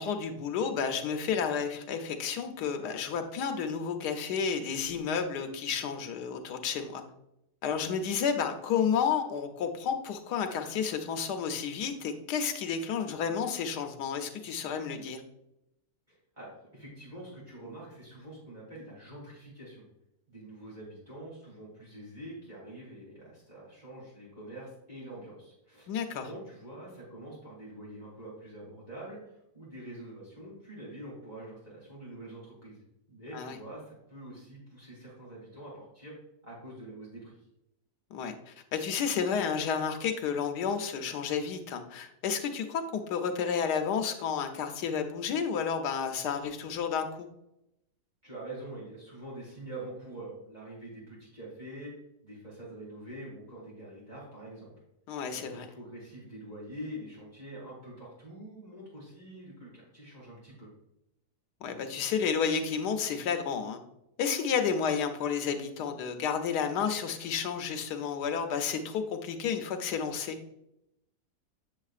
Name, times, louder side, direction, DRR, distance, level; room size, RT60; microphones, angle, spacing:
voice 1, 0.0-7.0 7.6-15.2 25.9-26.3 33.3-33.6 38.1-47.3 55.1-55.6 61.6-63.8 64.2-70.4, left 6 dB, 85° left, 7 dB, 1.3 m, -31 dB
voice 2, 16.1-19.8 20.3-32.8 33.1-36.1 36.4-37.4 48.2-51.9 52.2-54.7 55.3-60.7, right 1 dB, 25° right, -8 dB, 3.0 m, -45 dB
7.4 x 7.3 x 2.4 m, 0.84 s
omnidirectional pair, 1.7 m